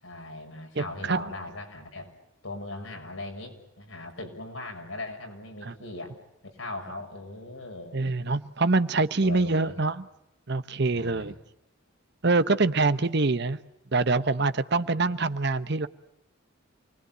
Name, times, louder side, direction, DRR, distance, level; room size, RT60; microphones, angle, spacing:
voice 1, 0.0-2.1 2.4-6.1 6.4-8.1 9.2-9.8 10.9-11.3 14.8-15.1, left 2 dB, 85° left, 3 dB, 6.6 m, -39 dB
voice 2, 0.8-1.2 5.6-5.7 7.9-10.0 10.5-11.3 12.2-13.6 13.9-15.9, right 3 dB, 55° right, 13 dB, 1.0 m, -25 dB
28.0 x 21.0 x 9.3 m, 0.84 s
head